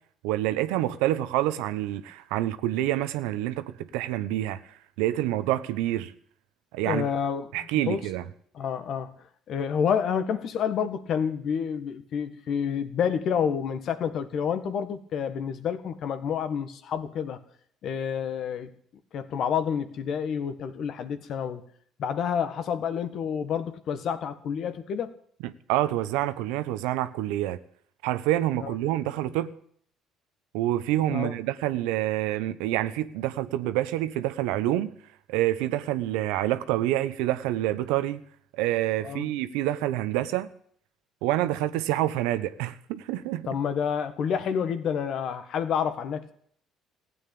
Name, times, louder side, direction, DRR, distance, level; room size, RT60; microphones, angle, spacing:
voice 1, 0.2-4.6 5.0-6.1 6.7-7.1 7.5-8.2 25.7-27.6 28.0-29.5 30.5-34.9 35.3-38.2 38.6-40.5 41.2-43.5, right 14 dB, 85° right, 1.0 m, -27 dB
voice 2, 6.9-8.0 8.5-9.1 9.5-17.4 17.8-18.7 19.1-21.6 22.0-25.1 28.6-28.7 31.1-31.3 39.0-39.3 43.5-46.3, left 7 dB, 60° left, 1.8 m, -29 dB
16.0 x 9.0 x 8.7 m
supercardioid pair, 75°, 0 cm